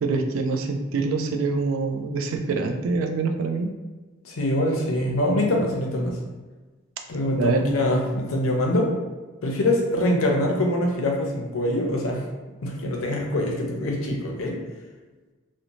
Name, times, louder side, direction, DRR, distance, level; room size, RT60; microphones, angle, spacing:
voice 1, 0.0-3.7 7.3-7.6, right 4 dB, 70° right, 5 dB, 0.3 m, -25 dB
voice 2, 4.2-6.2 7.1-8.9 9.4-12.2 12.6-14.6, left 1 dB, 70° left, 1 dB, 0.5 m, -24 dB
2.6 x 2.0 x 2.9 m, 1.3 s
head